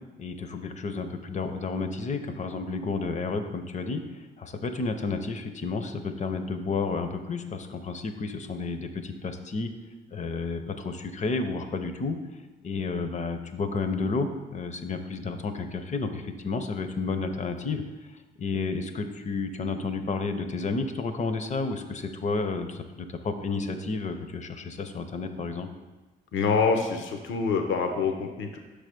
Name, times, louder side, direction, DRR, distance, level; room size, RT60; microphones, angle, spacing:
voice 1, 0.2-4.0 4.4-9.7 10.1-12.2 12.6-17.8 18.4-25.7, left 4 dB, 35° left, 8 dB, 0.6 m, -31 dB
voice 2, 26.3-28.6, left 5 dB, 75° left, 5 dB, 0.7 m, -26 dB
5.8 x 3.3 x 5.1 m, 1.2 s
cardioid pair, 90°, 20 cm